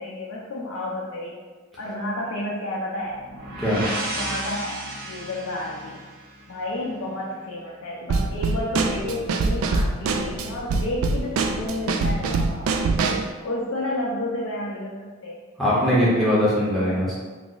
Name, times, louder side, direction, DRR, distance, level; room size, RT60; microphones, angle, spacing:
voice 1, 0.0-1.4 1.8-3.2 3.7-6.0 6.5-12.8 13.4-15.4 15.7-16.3, left 1 dB, 70° left, -5 dB, 0.5 m, -31 dB
sound 1, 3.1-6.9, right 1 dB, 45° right, 0.7 m, -34 dB
Drum kit / Snare drum, 8.1-13.3, right 3 dB, 80° right, 0.3 m, -24 dB
voice 2, 15.6-17.1, equal, ahead, -9 dB, 0.7 m, -21 dB
3.0 x 2.0 x 3.7 m, 1.4 s
head